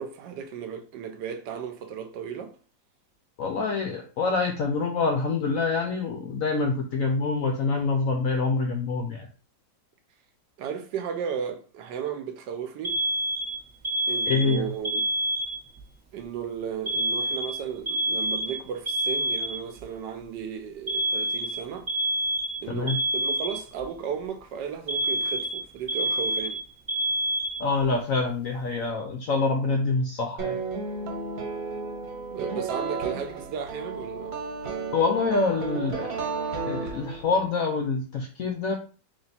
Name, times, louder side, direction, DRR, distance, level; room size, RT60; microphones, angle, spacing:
voice 1, 0.0-2.5 10.6-13.0 14.1-15.0 16.1-21.9 22.6-26.6 32.3-34.4, right 7 dB, 75° right, 1.2 m, -35 dB
voice 2, 3.4-9.3 14.3-14.7 22.7-23.0 27.6-30.6 34.9-36.1 36.7-38.7, left 4 dB, 75° left, 0.7 m, -26 dB
Alarm, 12.8-15.8 16.9-19.8 20.9-23.8 24.9-27.9, right 1 dB, 15° right, 0.8 m, -28 dB
sound 1, 30.4-37.5, right 4 dB, 90° right, 1.7 m, -33 dB
3.5 x 2.9 x 4.1 m
omnidirectional pair, 2.0 m